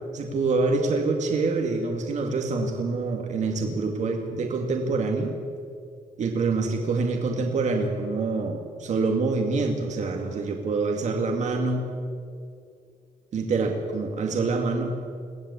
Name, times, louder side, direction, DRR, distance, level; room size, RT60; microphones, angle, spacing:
voice 1, 0.1-5.3 6.2-11.9 13.3-15.0, right 3 dB, 55° right, 2 dB, 2.3 m, -26 dB
22.5 x 16.0 x 8.3 m, 2.3 s
cardioid pair, 140°, 14 cm